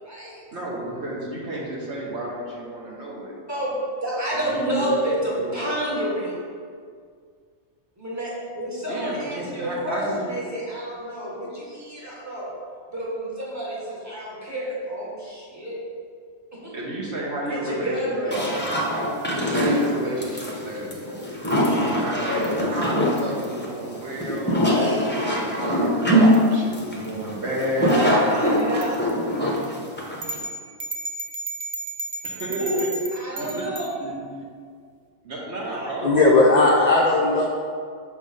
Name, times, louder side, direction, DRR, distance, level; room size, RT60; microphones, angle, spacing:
voice 1, 0.0-0.4 3.5-6.4 8.0-12.5 12.9-15.8 16.5-16.8 17.5-18.5 27.9-29.0 32.6-32.8 33.1-33.9 35.7-36.7 37.2-37.3, right 1 dB, 15° right, -6 dB, 1.6 m, -29 dB
voice 2, 0.5-3.3 4.3-5.0 5.4-5.5 8.9-10.3 16.7-18.3 19.3-21.5 21.9-24.6 25.1-28.8 32.2-32.9 33.3-33.7 34.0-34.4 35.2-36.2 36.6-36.7, right 1 dB, 60° right, -4 dB, 1.4 m, -31 dB
sound 1, 18.3-30.4, equal, 10° left, 0.6 m, -22 dB
sound 2, 30.2-33.9, right 2 dB, 35° right, 0.4 m, -33 dB
voice 3, 36.0-37.5, left 2 dB, 50° left, -1 dB, 0.5 m, -17 dB
6.4 x 3.5 x 5.3 m, 2.1 s
omnidirectional pair, 1.3 m